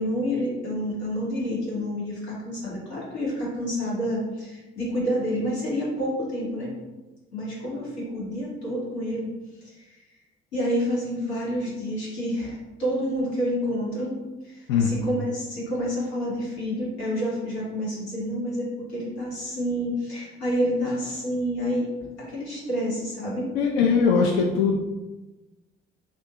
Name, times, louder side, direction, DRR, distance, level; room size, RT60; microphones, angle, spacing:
voice 1, 0.0-6.7 7.3-9.3 9.6-9.7 10.5-14.1 14.4-21.9 22.2-23.5, equal, 85° left, -6 dB, 1.0 m, -28 dB
voice 2, 23.5-24.8, left 5 dB, 65° left, 0 dB, 0.5 m, -20 dB
2.6 x 2.4 x 3.7 m, 1.1 s
figure-of-eight pair, 45°, 33 cm